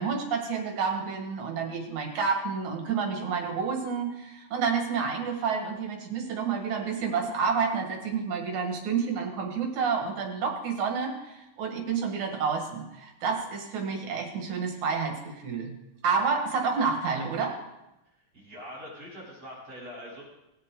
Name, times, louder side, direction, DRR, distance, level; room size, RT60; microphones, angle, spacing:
voice 1, 0.0-15.7 16.0-17.6, right 5 dB, 70° right, 2 dB, 3.1 m, -29 dB
voice 2, 18.3-20.2, equal, 40° right, -7 dB, 4.9 m, -43 dB
19.5 x 8.0 x 3.8 m, 0.92 s
omnidirectional pair, 3.5 m